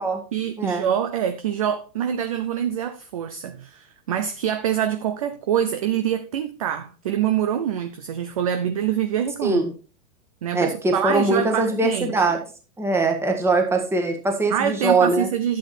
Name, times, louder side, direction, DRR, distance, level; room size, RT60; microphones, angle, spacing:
voice 1, 0.3-9.6 10.4-12.1 14.5-15.6, right 9 dB, 25° right, 0.4 m, -25 dB
voice 2, 9.4-9.7 10.5-12.4 12.8-15.3, right 2 dB, 5° right, 1.5 m, -22 dB
11.5 x 8.0 x 4.2 m
supercardioid pair, 160°, 44 cm